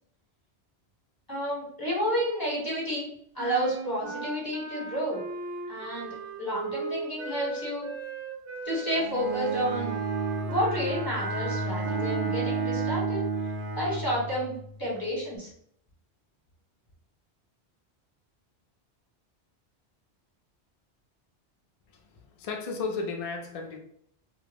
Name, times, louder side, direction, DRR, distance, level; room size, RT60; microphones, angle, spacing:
voice 1, 1.3-3.1 3.3-5.2 5.7-7.9 8.6-9.9 10.5-13.2 13.8-15.5, equal, 20° left, -5 dB, 0.9 m, -30 dB
sound 1, 3.4-13.0, right 4 dB, 85° right, 0.9 m, -38 dB
Bowed string instrument, 8.9-14.7, right 3 dB, 60° right, 0.6 m, -31 dB
voice 2, 22.4-23.8, left 4 dB, 60° left, 3 dB, 0.4 m, -33 dB
2.2 x 2.0 x 3.3 m, 0.67 s
omnidirectional pair, 1.1 m